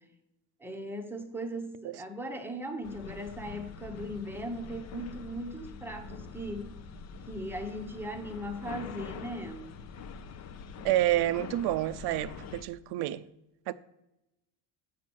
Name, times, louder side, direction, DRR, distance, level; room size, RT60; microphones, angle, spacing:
voice 1, 0.6-6.8 7.3-9.8, equal, 5° right, 0.8 m, -38 dB
sound 1, 2.8-12.6, left 5 dB, 35° left, 0.5 m, -44 dB
voice 2, 10.8-13.2 13.7-13.8, right 14 dB, 60° right, 0.5 m, -28 dB
7.6 x 6.4 x 6.1 m
cardioid pair, 150°, 45 cm